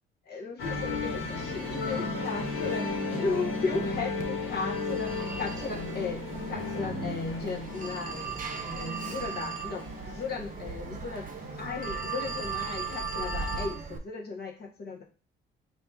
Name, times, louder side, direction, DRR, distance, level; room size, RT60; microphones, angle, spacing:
voice 1, 0.3-2.9 3.2-11.3 11.6-15.0, left 4 dB, 50° left, 0 dB, 1.0 m, -36 dB
sound 1, 0.6-13.7, left 3 dB, 80° left, 1.5 m, -35 dB
Telephone, 4.2-14.0, right 6 dB, 40° right, 0.7 m, -38 dB
4.2 x 2.8 x 3.5 m, 0.34 s
cardioid pair, 75°, 21 cm